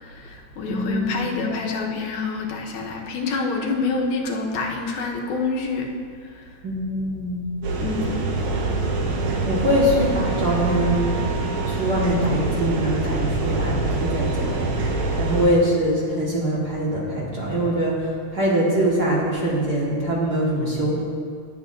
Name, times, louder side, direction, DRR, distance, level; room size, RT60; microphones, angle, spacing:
voice 1, 0.0-5.9 6.3-6.4 7.8-8.6, left 4 dB, 90° left, 0 dB, 2.5 m, -27 dB
voice 2, 0.7-1.3 6.6-7.5 9.4-11.2 11.7-21.0, right 1 dB, 40° right, -6 dB, 1.7 m, -23 dB
sound 1, 7.6-15.5, right 3 dB, 75° right, 2.5 m, -25 dB
20.0 x 8.0 x 2.6 m, 2.2 s
omnidirectional pair, 3.4 m